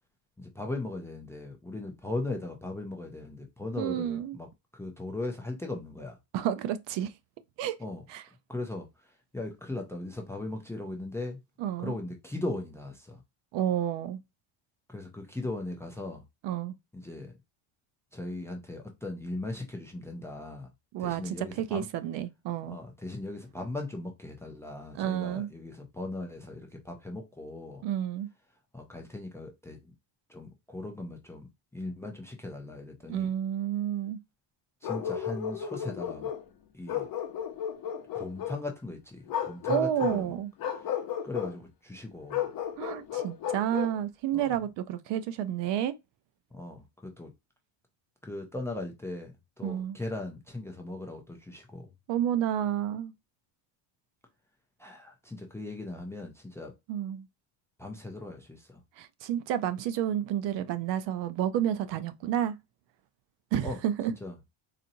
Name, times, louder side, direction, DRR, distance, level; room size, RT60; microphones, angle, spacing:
voice 1, 0.4-4.5 4.7-6.2 7.8-8.0 8.5-11.4 11.8-13.2 14.9-16.2 16.9-17.3 18.1-20.7 21.0-21.9 22.7-27.8 28.7-29.9 30.3-33.3 34.8-36.3 36.7-37.1 38.1-40.4 40.7-40.9 41.2-42.5 44.3-44.6 46.5-47.3 48.2-51.9 54.8-56.7 57.8-58.8 63.6-63.8 64.2-64.4, left 2 dB, 5° left, 0.5 m, -38 dB
voice 2, 3.8-4.4 6.3-7.1 7.6-7.8 8.1-8.2 11.6-11.9 13.5-14.2 16.4-16.8 20.9-22.8 24.9-25.5 27.8-28.3 33.1-34.2 39.7-40.5 42.8-45.9 49.6-50.0 52.1-53.1 56.9-57.3 59.0-62.6 63.5-64.1, right 10 dB, 60° right, 0.6 m, -30 dB
Bark, 34.8-36.4 36.9-38.6 39.3-40.2 40.6-41.5 42.3-44.0, left 9 dB, 45° left, 0.9 m, -33 dB
4.1 x 2.7 x 2.6 m
cardioid pair, 160°, 50 cm